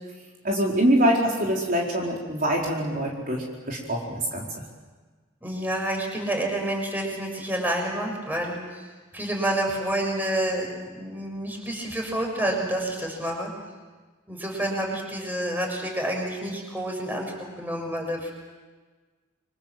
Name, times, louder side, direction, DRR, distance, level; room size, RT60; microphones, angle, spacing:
voice 1, 0.4-4.6, equal, 45° right, -2 dB, 4.5 m, -24 dB
voice 2, 5.4-8.9 9.1-10.7 10.9-13.5 14.3-18.3, right 1 dB, 10° right, 1 dB, 6.6 m, -28 dB
29.0 x 25.5 x 7.6 m, 1.4 s
head